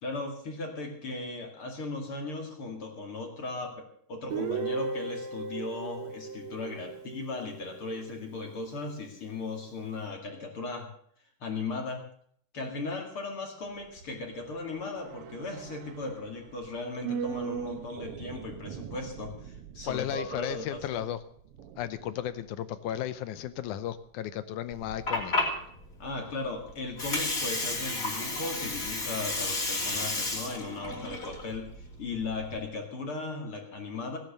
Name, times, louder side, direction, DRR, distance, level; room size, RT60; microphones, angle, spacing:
voice 1, 0.0-10.9 11.4-12.0 12.5-21.0 26.0-34.2, left 3 dB, 45° left, 2 dB, 2.7 m, -37 dB
Guitar, 4.3-8.1, right 4 dB, 50° right, 2.0 m, -36 dB
sound 1, 13.6-24.1 24.4-24.5, right 8 dB, 90° right, 1.3 m, -42 dB
voice 2, 19.8-21.2 21.8-25.3, left 11 dB, 75° left, 13 dB, 2.1 m, -34 dB
Water, 24.7-32.7, left 2 dB, 25° left, 3.2 m, -32 dB
16.5 x 10.5 x 6.7 m, 0.64 s
omnidirectional pair, 3.8 m